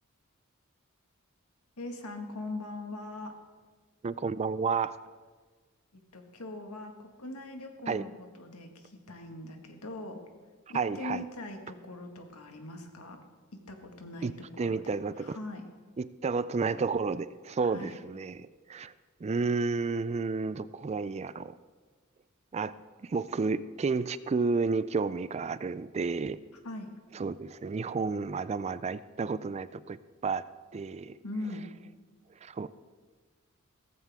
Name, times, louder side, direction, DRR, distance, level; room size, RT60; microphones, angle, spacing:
voice 1, 1.8-3.3 5.9-10.2 10.7-13.2 13.7-14.9 15.2-15.6 17.6-18.0 26.6-26.9 31.2-31.6, left 2 dB, 80° left, 4 dB, 1.9 m, -41 dB
voice 2, 4.0-4.9 7.9-8.1 10.7-11.2 14.2-14.3 14.6-15.4 16.0-18.9 19.2-21.5 22.5-22.7 23.0-26.4 27.1-30.5 30.7-31.2 32.4-32.7, right 4 dB, 30° right, 16 dB, 0.3 m, -31 dB
16.5 x 15.0 x 3.6 m, 1.4 s
head